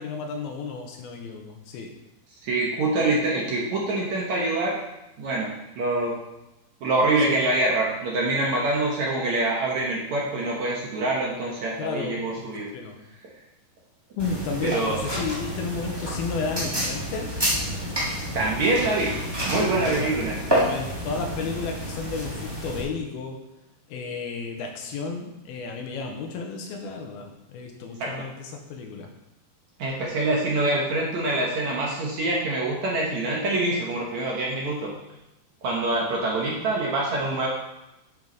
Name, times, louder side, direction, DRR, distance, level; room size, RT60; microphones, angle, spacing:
voice 1, 0.0-1.9 7.3-7.4 11.8-12.4 12.7-13.0 14.2-17.3 19.7-20.2 20.5-23.4 23.9-29.1, left 4 dB, 75° left, 3 dB, 2.7 m, -33 dB
voice 2, 2.4-4.8 5.2-6.2 6.8-12.7 14.6-15.0 18.3-19.1 19.4-20.3 28.0-28.1 29.8-34.9 35.6-37.5, right 2 dB, 65° right, -3 dB, 1.9 m, -25 dB
sound 1, 14.2-22.8, equal, 15° right, 0.8 m, -29 dB
10.5 x 6.0 x 4.0 m, 0.93 s
omnidirectional pair, 4.7 m